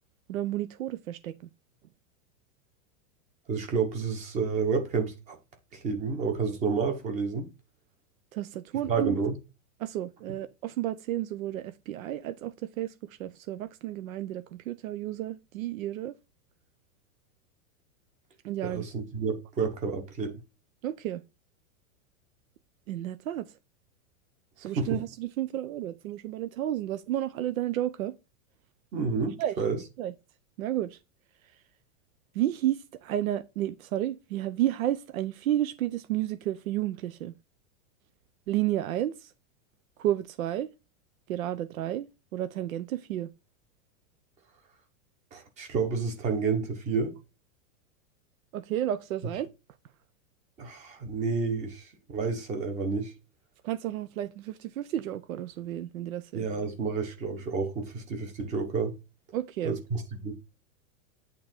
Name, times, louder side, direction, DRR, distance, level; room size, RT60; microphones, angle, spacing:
voice 1, 0.3-1.3 8.3-9.2 9.8-12.9 13.2-16.1 18.4-18.9 20.8-21.2 22.9-23.5 24.6-28.1 29.4-29.5 30.0-30.1 30.6-31.0 32.3-37.3 38.5-39.3 40.0-40.7 41.3-42.1 42.3-43.3 48.5-49.5 53.6-56.5 59.3-59.7, right 13 dB, 75° right, 0.8 m, -31 dB
voice 2, 3.5-5.4 5.7-7.5 8.9-9.3 18.6-20.4 24.7-25.0 28.9-29.8 45.3-47.1 50.6-51.9 52.1-53.1 56.3-58.9 59.6-60.3, right 5 dB, 15° right, 1.1 m, -30 dB
8.5 x 3.9 x 4.5 m
supercardioid pair, 180°, 41 cm